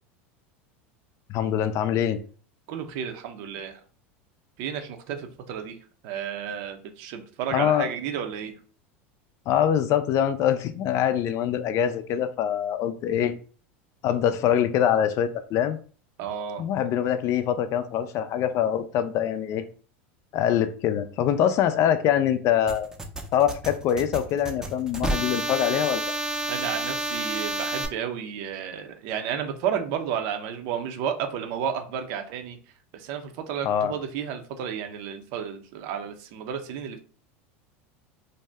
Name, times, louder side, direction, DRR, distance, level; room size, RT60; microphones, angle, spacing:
voice 1, 1.3-2.2 7.5-7.9 9.5-13.3 14.0-15.8 16.6-19.6 20.3-22.9 23.3-26.1 33.6-33.9, left 9 dB, 50° left, 11 dB, 0.4 m, -24 dB
voice 2, 2.7-3.8 4.6-5.8 6.0-8.5 16.2-16.6 26.5-32.6 32.9-37.0, right 8 dB, 60° right, 6 dB, 0.6 m, -32 dB
sound 1, 22.7-27.9, right 2 dB, 10° right, 0.6 m, -30 dB
2.6 x 2.1 x 3.3 m, 0.41 s
hypercardioid pair, 100°, 7 cm